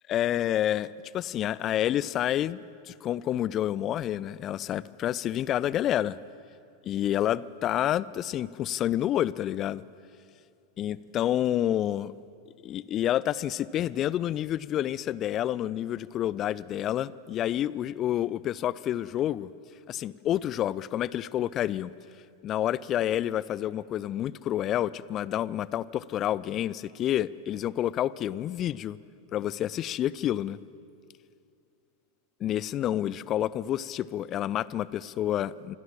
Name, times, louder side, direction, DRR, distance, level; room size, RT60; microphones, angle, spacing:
voice 1, 0.1-2.6 2.9-6.2 6.8-9.8 10.8-12.1 12.6-19.5 19.9-21.9 22.4-29.0 29.3-30.6 32.4-35.7, left 12 dB, 30° left, 20 dB, 0.5 m, -29 dB
25.5 x 16.5 x 7.4 m, 2.5 s
figure-of-eight pair, 90°, 0 cm